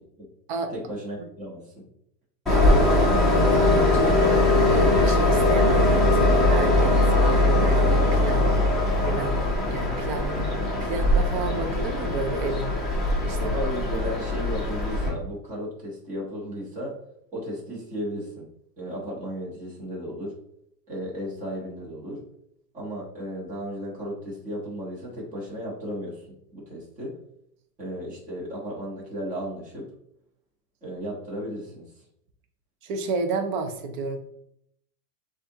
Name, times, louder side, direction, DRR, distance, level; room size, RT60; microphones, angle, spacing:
voice 1, 0.7-1.8 13.4-17.0 17.3-18.4 18.8-20.3 20.9-22.2 22.7-27.2 27.8-29.9 30.8-31.9, equal, 15° right, -4 dB, 1.1 m, -34 dB
Train, 2.5-15.1, left 2 dB, ahead, 0.8 m, -21 dB
voice 2, 2.5-4.2 4.7-8.6 9.0-10.5 10.8-12.7 13.2-13.5 32.8-34.2, right 3 dB, 35° right, 5 dB, 0.5 m, -31 dB
6.6 x 2.5 x 2.7 m, 0.73 s
supercardioid pair, 155°, 48 cm